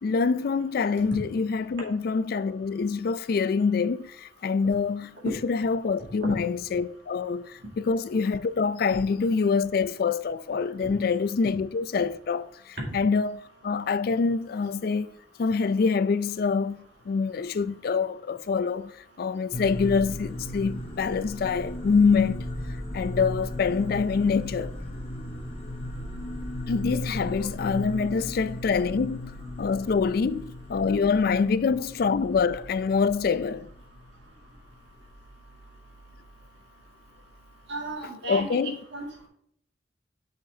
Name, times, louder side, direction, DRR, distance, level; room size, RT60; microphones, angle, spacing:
voice 1, 0.0-15.1 15.4-18.9 19.2-22.5 22.9-24.8 26.7-33.7 38.3-38.8, left 5 dB, 55° left, 0.3 m, -25 dB
sound 1, 19.5-37.9, left 1 dB, 30° left, 1.1 m, -37 dB
voice 2, 27.3-27.9 37.7-39.3, right 2 dB, 70° right, 2.0 m, -36 dB
6.7 x 6.5 x 2.7 m
head